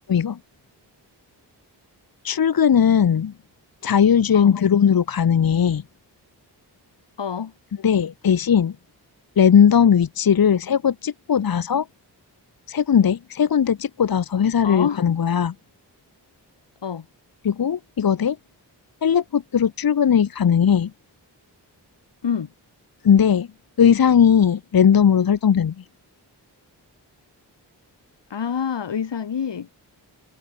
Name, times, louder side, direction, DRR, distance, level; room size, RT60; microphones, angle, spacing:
voice 1, 0.1-0.4 2.2-3.3 3.8-5.8 7.8-8.7 9.4-11.9 12.7-15.5 17.4-18.4 19.0-20.9 23.0-23.5 23.8-25.7, left 8 dB, 55° left, 1.0 m, -18 dB
voice 2, 7.2-7.5 14.6-15.0 16.8-17.1 22.2-22.5 28.3-29.7, left 7 dB, 85° left, 4.4 m, -27 dB
cardioid pair, 50°, 42 cm